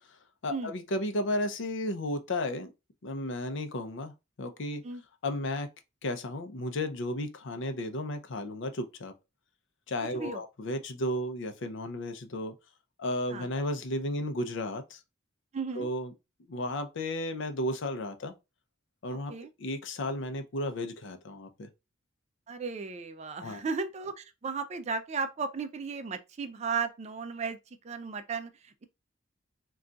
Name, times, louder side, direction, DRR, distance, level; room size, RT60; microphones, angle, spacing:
voice 1, 0.4-2.7 3.0-4.1 4.4-4.8 5.2-5.7 6.0-9.1 9.9-12.5 13.0-15.0 15.8-16.1 16.5-18.3 19.0-19.3 19.6-21.7 23.4-23.6, left 1 dB, 65° left, 0.5 m, -33 dB
voice 2, 15.5-15.9 19.3-19.5 22.5-27.6 27.8-28.8, right 5 dB, 35° right, 0.4 m, -35 dB
2.3 x 2.3 x 3.8 m
head